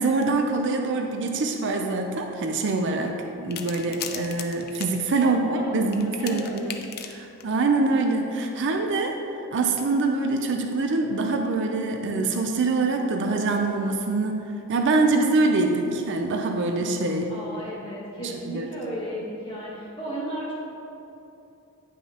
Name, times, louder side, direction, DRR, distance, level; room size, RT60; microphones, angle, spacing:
voice 1, 0.0-6.8 7.1-9.1 9.5-17.3 18.2-18.7, right 3 dB, 60° right, 4 dB, 0.5 m, -24 dB
sound 1, 3.5-4.9 5.9-7.6 8.5-8.7, left 8 dB, 45° left, 0.5 m, -37 dB
voice 2, 5.2-6.6 17.3-20.5, equal, 25° left, -8 dB, 1.6 m, -35 dB
9.4 x 5.8 x 2.9 m, 2.8 s
head